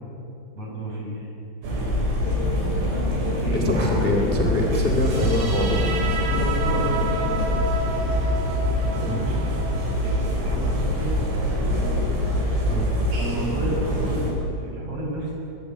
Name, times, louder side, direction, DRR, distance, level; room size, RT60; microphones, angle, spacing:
voice 1, 0.5-1.2 1.6-2.1 3.2-3.8 4.2-4.3 6.3-7.4 8.9-9.6 9.8-11.3 11.7-11.9 13.1-15.3, right 1 dB, 30° right, -1 dB, 6.9 m, -32 dB
sound 1, 1.6-14.3, equal, 75° right, 8.7 m, -25 dB
sound 2, 2.2-7.7, left 7 dB, 85° left, 2.0 m, -30 dB
voice 2, 3.5-5.9 9.0-9.2 12.7-12.9, left 1 dB, 40° left, 2 dB, 0.7 m, -24 dB
sound 3, 4.8-11.9, right 4 dB, 60° right, 5.1 m, -33 dB
23.0 x 22.5 x 9.4 m, 2.8 s
omnidirectional pair, 5.9 m